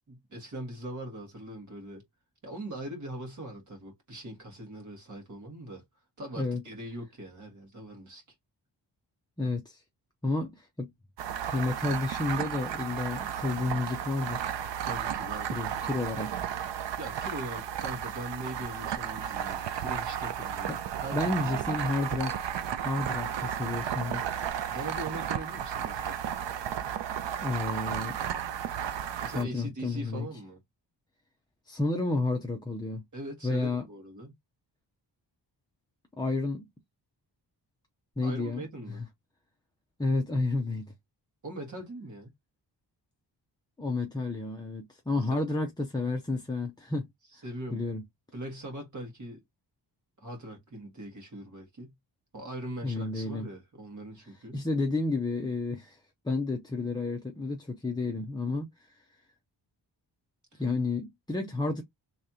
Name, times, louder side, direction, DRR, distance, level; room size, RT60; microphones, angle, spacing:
voice 1, 0.1-2.0 2.4-5.8 6.2-8.2 14.8-15.6 17.0-21.9 24.7-26.3 29.2-30.6 33.1-34.3 38.2-39.0 41.4-42.3 45.3-45.5 47.4-47.8 48.3-49.4 50.2-51.9 52.3-54.6 60.5-60.6, right 1 dB, 45° right, 1.7 m, -41 dB
voice 2, 9.4-9.8 10.2-10.9 11.5-14.5 15.5-16.4 20.7-20.8 21.1-22.4 22.8-24.3 27.4-28.2 29.3-30.3 31.7-33.0 33.4-33.8 36.2-36.7 38.2-38.6 38.9-39.0 40.0-40.9 43.8-47.1 47.7-48.0 52.8-53.5 54.5-59.1 60.6-61.8, left 3 dB, 10° left, 0.5 m, -31 dB
sound 1, 11.2-29.4, right 9 dB, 80° right, 0.6 m, -33 dB
3.2 x 2.8 x 3.7 m
wide cardioid pair, 180°, 43 cm